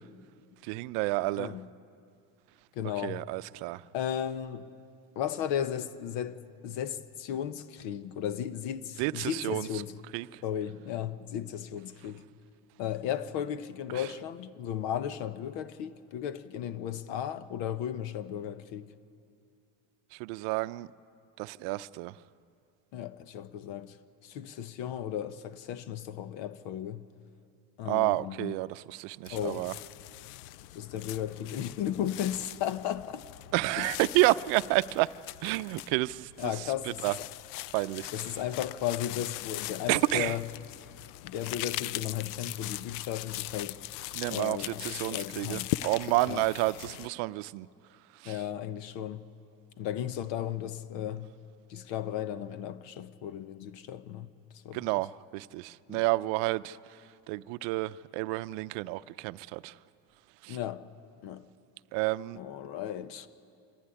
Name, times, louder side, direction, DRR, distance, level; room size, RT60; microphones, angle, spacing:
voice 1, 0.6-1.5 3.0-3.8 9.0-9.7 10.1-10.4 13.9-14.1 20.1-20.9 21.4-22.2 27.9-29.7 33.5-35.1 35.4-36.7 37.0-37.2 37.7-38.1 39.9-40.4 44.1-47.7 48.1-48.4 54.7-57.0 57.3-59.7 60.4-60.6 61.9-62.4, right 20 dB, 65° right, 0.6 m, -30 dB
voice 2, 2.8-3.2 3.9-4.7 5.2-9.9 10.4-12.2 12.8-18.9 22.9-24.0 24.2-27.0 27.8-28.5 29.3-29.6 30.7-33.2 33.8-33.9 36.4-37.3 38.1-40.5 41.2-43.8 44.3-45.7 46.3-46.5 48.2-49.3 49.8-51.3 51.7-54.3 54.6-54.8 55.9-56.0 60.5-60.8 61.2-61.5 62.3-63.3, left 10 dB, 70° left, 1.0 m, -35 dB
sound 1, 29.3-47.1, left 16 dB, 90° left, 0.5 m, -40 dB
25.5 x 15.0 x 9.9 m
cardioid pair, 140°, 45 cm